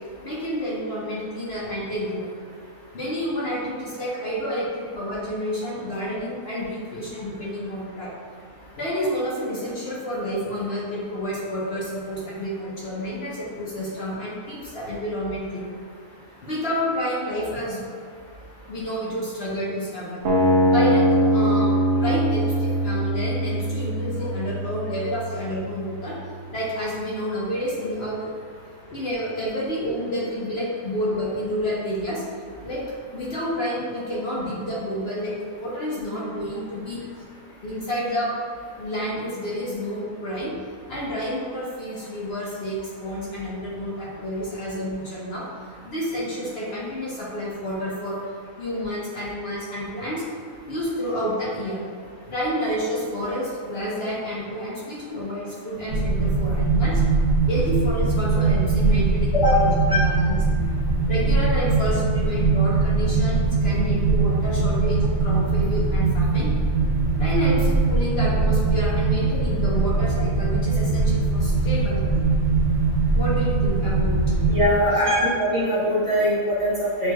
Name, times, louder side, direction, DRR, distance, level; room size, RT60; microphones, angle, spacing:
voice 1, 0.2-2.3 2.9-8.2 8.8-15.7 16.4-17.8 18.7-20.2 20.6-26.2 26.5-28.3 28.9-32.2 32.6-32.9 33.1-37.0 37.6-38.4 38.8-40.5 40.9-45.5 45.8-48.2 48.6-50.2 50.7-51.8 52.3-57.0 57.5-60.4 61.1-66.5 67.2-72.3 73.1-74.3 74.8-75.2, equal, 50° left, -6 dB, 1.0 m, -29 dB
sound 1, 20.2-26.3, equal, 55° right, 0.9 m, -22 dB
sound 2, 55.9-74.7, right 3 dB, 85° right, 1.1 m, -21 dB
voice 2, 74.5-77.1, equal, 25° right, -10 dB, 1.0 m, -22 dB
6.8 x 3.2 x 2.2 m, 2.1 s
omnidirectional pair, 1.4 m